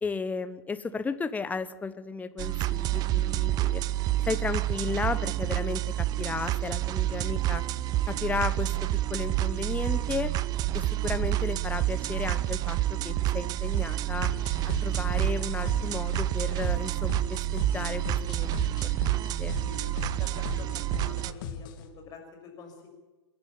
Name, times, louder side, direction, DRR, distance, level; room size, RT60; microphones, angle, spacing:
voice 1, 0.0-3.8 4.3-7.6 8.1-10.3 10.7-14.3 14.6-19.6, left 4 dB, 10° left, 13 dB, 0.9 m, -34 dB
sound 1, 2.4-21.3, right 15 dB, 30° right, 0.6 m, -28 dB
sound 2, 14.2-21.9, left 7 dB, 50° left, 2.7 m, -39 dB
voice 2, 19.6-22.9, left 5 dB, 30° left, 2 dB, 6.6 m, -47 dB
28.0 x 10.5 x 8.9 m, 1.2 s
figure-of-eight pair, 105°, 14 cm